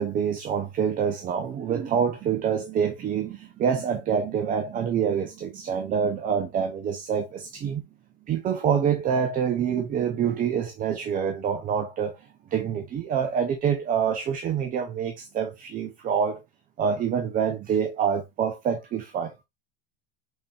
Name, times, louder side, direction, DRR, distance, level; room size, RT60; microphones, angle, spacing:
voice 1, 0.0-7.8 8.3-12.2 12.5-16.4 16.8-19.3, right 7 dB, 25° right, 0.6 m, -26 dB
5.3 x 3.7 x 2.3 m
hypercardioid pair, 90°, 31 cm